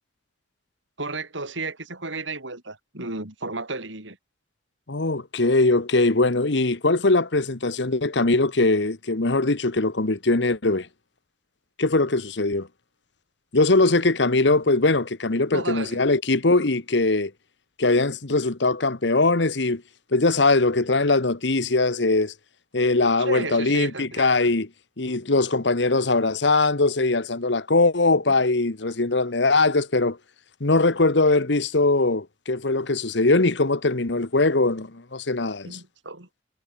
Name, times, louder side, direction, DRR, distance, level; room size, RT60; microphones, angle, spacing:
voice 1, 1.0-4.2 15.5-16.0 23.2-24.3 35.6-36.3, right 3 dB, 85° right, 7.2 m, -33 dB
voice 2, 4.9-10.9 11.8-12.7 13.5-17.3 17.8-19.8 20.1-22.3 22.7-24.7 25.0-30.2 30.6-35.8, left 2 dB, 70° left, 1.3 m, -21 dB
head